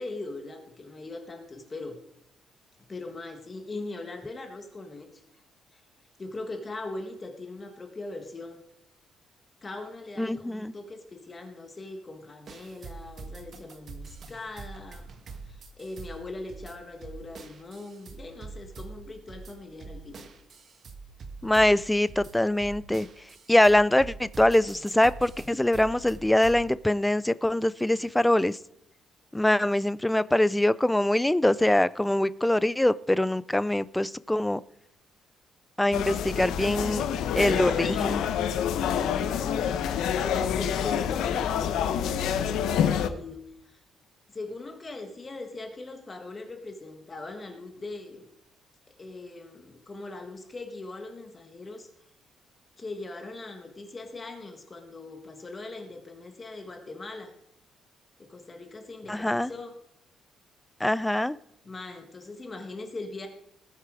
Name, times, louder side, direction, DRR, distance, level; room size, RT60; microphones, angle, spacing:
voice 1, 0.0-2.0 2.9-5.2 5.7-5.8 6.2-8.6 9.6-15.1 15.4-20.2 39.1-43.8 44.3-48.3 48.9-51.9 52.8-57.3 58.2-59.8 61.6-63.3, left 2 dB, 20° left, 5 dB, 1.5 m, -40 dB
voice 2, 10.2-10.7 21.4-23.1 23.5-28.6 29.3-34.6 35.8-37.0 37.4-38.2 59.1-59.5 60.8-61.4, left 1 dB, 5° left, 17 dB, 0.4 m, -23 dB
sound 1, 12.5-26.7, right 4 dB, 40° right, 1.5 m, -44 dB
sound 2, 35.9-43.1, left 8 dB, 85° left, 0.9 m, -27 dB
19.0 x 8.2 x 4.9 m, 0.78 s
cardioid pair, 155°, 0 cm